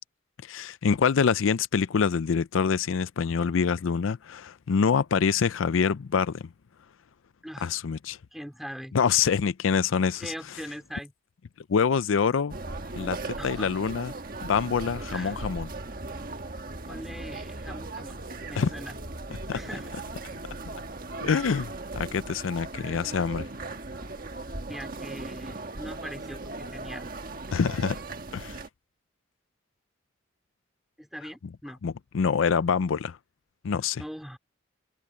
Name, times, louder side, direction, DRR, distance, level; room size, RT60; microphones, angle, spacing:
voice 1, 0.4-6.4 7.6-8.2 8.9-10.3 11.7-12.5 13.0-13.2 13.4-14.1 14.4-15.7 18.6-18.7 19.5-19.6 21.2-21.7 22.0-23.5 27.5-28.0 28.3-28.6 31.8-33.2 33.6-34.0, left 6 dB, 80° left, 0.5 m, -25 dB
voice 2, 7.4-7.7 8.3-8.9 10.2-11.1 13.3-13.7 15.1-15.4 16.9-18.2 18.5-19.0 19.5-19.9 22.8-23.0 24.7-27.1 31.0-31.8 34.0-34.4, equal, ahead, 3.0 m, -41 dB
sound 1, 12.5-28.7, right 2 dB, 45° right, 1.5 m, -38 dB
head